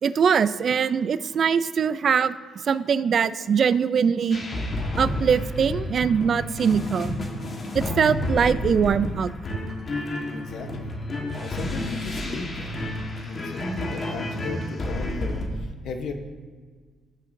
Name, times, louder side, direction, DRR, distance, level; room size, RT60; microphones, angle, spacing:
voice 1, 0.0-2.3 2.6-4.4 5.0-7.1 7.7-9.3, right 6 dB, 55° right, 14 dB, 0.4 m, -22 dB
sound 1, 4.3-15.5, left 1 dB, 45° left, 1.4 m, -30 dB
voice 2, 10.3-10.9 11.4-12.7 13.2-16.1, left 4 dB, 75° left, 5 dB, 1.0 m, -36 dB
15.0 x 6.5 x 2.7 m, 1.5 s
cardioid pair, 90°, 0 cm